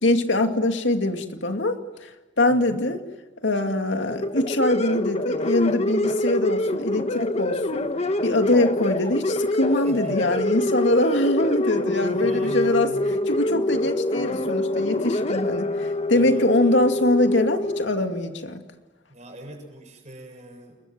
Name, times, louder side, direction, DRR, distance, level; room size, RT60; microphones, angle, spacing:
voice 1, 0.0-2.1 2.4-3.0 3.4-7.8 8.2-12.9 13.3-18.6, left 1 dB, 80° left, 5 dB, 2.3 m, -23 dB
voice 2, 2.5-2.8 9.7-11.2 12.2-13.1 16.1-16.9 19.1-20.8, right 1 dB, 40° right, 4 dB, 7.3 m, -42 dB
sound 1, 4.1-17.8, left 1 dB, 35° left, 1.5 m, -25 dB
29.5 x 22.5 x 7.6 m, 1.2 s
head